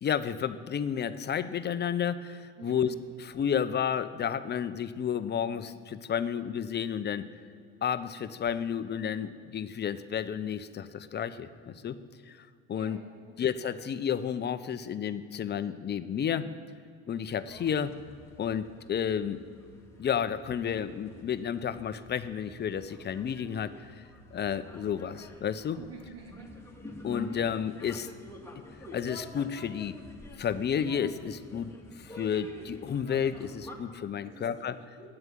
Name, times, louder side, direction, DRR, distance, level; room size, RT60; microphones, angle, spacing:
voice 1, 0.0-2.9 3.2-7.3 7.8-12.0 12.3-13.0 13.4-16.5 17.1-17.9 18.4-19.4 20.0-24.0 24.3-25.8 27.0-28.1 28.9-29.9 30.4-31.7 32.0-34.8, left 8 dB, 35° left, 13 dB, 0.7 m, -31 dB
voice 2, 12.7-13.3 25.8-26.5 34.2-34.7 35.0-35.1, right 5 dB, 55° right, 0 dB, 3.0 m, -48 dB
sound 1, 17.5-33.8, left 1 dB, 10° left, 2.1 m, -48 dB
8.8 x 7.7 x 9.2 m, 2.1 s
hypercardioid pair, 70°, 31 cm